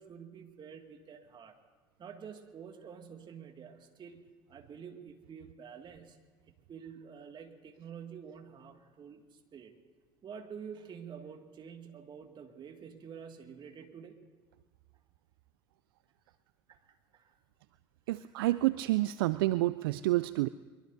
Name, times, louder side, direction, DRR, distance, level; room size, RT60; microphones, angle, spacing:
voice 1, 0.0-1.6 2.0-6.2 6.5-9.7 10.2-14.2 16.7-17.3 18.1-18.3, right 7 dB, 40° right, 4 dB, 2.1 m, -48 dB
voice 2, 18.1-20.5, right 17 dB, 70° right, 15 dB, 0.4 m, -29 dB
23.5 x 23.0 x 2.7 m, 1.4 s
hypercardioid pair, 65°, 12 cm